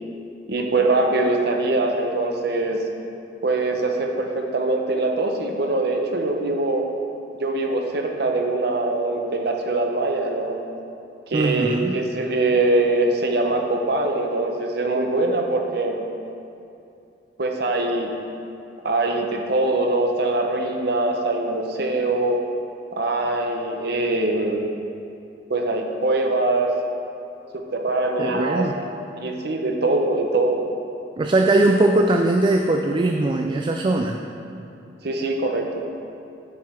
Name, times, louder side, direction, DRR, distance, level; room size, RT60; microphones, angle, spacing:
voice 1, 0.5-2.8 3.4-6.9 7.4-10.6 11.3-16.0 17.4-18.1 18.8-22.4 22.9-24.6 25.5-26.7 27.5-28.9 29.2-30.6 35.0-35.9, right 2 dB, 65° right, 3 dB, 0.8 m, -23 dB
voice 2, 11.3-12.0 28.2-28.7 31.2-34.2, right 2 dB, 30° right, 3 dB, 0.3 m, -20 dB
9.2 x 4.9 x 4.4 m, 2.7 s
head